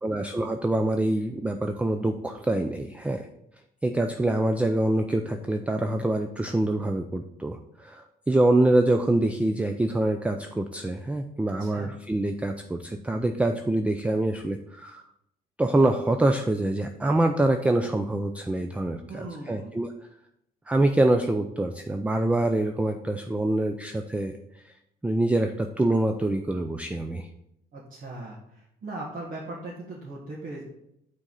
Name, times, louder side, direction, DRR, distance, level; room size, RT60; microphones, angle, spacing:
voice 1, 0.0-3.3 3.8-15.0 15.6-19.9 20.7-24.7 25.0-27.3, right 2 dB, 10° right, 6 dB, 0.4 m, -25 dB
voice 2, 11.6-11.9 19.1-19.7 27.7-30.6, right 2 dB, 50° right, -6 dB, 1.8 m, -39 dB
6.2 x 3.8 x 5.5 m, 0.78 s
cardioid pair, 110°, 17 cm